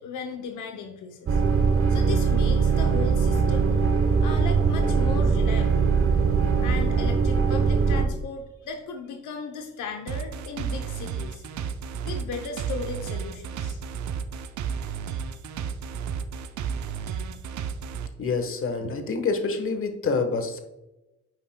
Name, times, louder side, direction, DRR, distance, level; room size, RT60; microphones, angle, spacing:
voice 1, 0.0-1.4 1.9-3.7 4.2-5.9 6.6-11.4 12.0-13.8, left 5 dB, 80° left, 4 dB, 0.8 m, -36 dB
sound 1, 1.3-8.0, right 5 dB, 45° right, 0.9 m, -21 dB
sound 2, 10.1-18.1, right 7 dB, 70° right, 0.7 m, -32 dB
voice 2, 18.2-20.6, left 4 dB, 45° left, 6 dB, 1.2 m, -27 dB
8.8 x 5.8 x 2.2 m, 0.97 s
cardioid pair, 90°, 30 cm